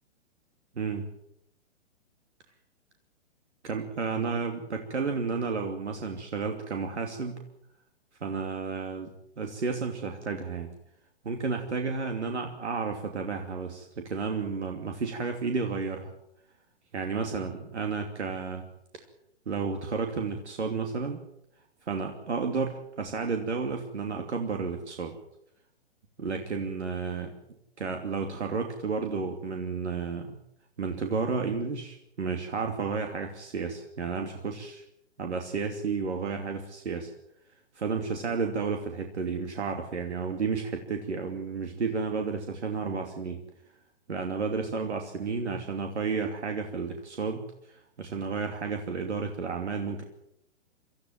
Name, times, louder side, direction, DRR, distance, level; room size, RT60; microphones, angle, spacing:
voice 1, 3.6-7.4 8.2-9.1 9.4-10.7 11.2-16.1 16.9-18.6 18.9-19.0 19.5-21.2 21.9-25.2 26.2-27.3 27.8-30.3 30.8-34.8 35.2-37.1 37.7-43.4 44.1-50.0, right 5 dB, 75° right, 4 dB, 2.9 m, -32 dB
25.0 x 14.0 x 9.2 m, 0.79 s
figure-of-eight pair, 125°, 35 cm